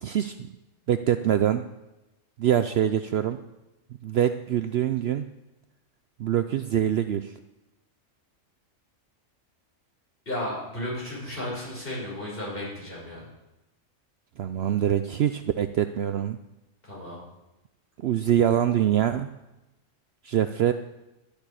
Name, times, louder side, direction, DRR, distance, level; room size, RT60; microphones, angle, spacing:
voice 1, 0.0-0.5 0.9-1.6 2.4-3.4 4.0-5.2 6.2-7.3 14.4-16.4 18.0-19.3 20.2-20.7, right 10 dB, 60° right, 10 dB, 0.7 m, -24 dB
voice 2, 10.3-13.3 16.8-17.2, left 1 dB, 45° left, -5 dB, 6.4 m, -34 dB
12.5 x 6.8 x 9.8 m, 0.99 s
omnidirectional pair, 1.4 m